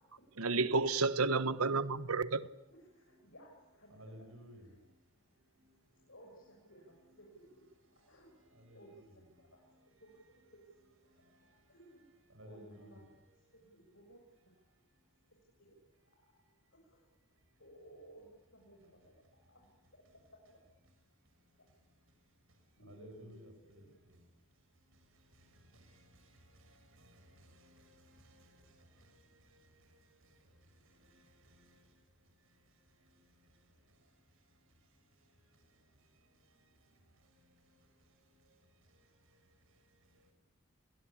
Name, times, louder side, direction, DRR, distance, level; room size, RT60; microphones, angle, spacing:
voice 1, 0.4-2.5, right 3 dB, 90° right, 14 dB, 1.2 m, -31 dB
voice 2, 2.9-3.9 4.6-4.8 6.1-7.5 7.9-8.4 8.7-9.1 9.4-9.6 11.7-12.0 12.4-13.0 13.5-14.2 15.6-15.7 16.0-16.2 16.8-17.0 17.6-18.3 18.5-19.6 19.9-20.6 22.8-23.4 23.8-23.9, right 1 dB, 65° left, 0 dB, 6.8 m, -59 dB
voice 3, 3.9-4.7 7.0-7.1 8.5-9.2 11.4-11.5 11.9-13.1 22.8-24.2 25.3-29.2 29.4-29.7 30.8-31.8, equal, 70° right, 6 dB, 6.7 m, -58 dB
29.5 x 22.0 x 8.7 m, 0.93 s
head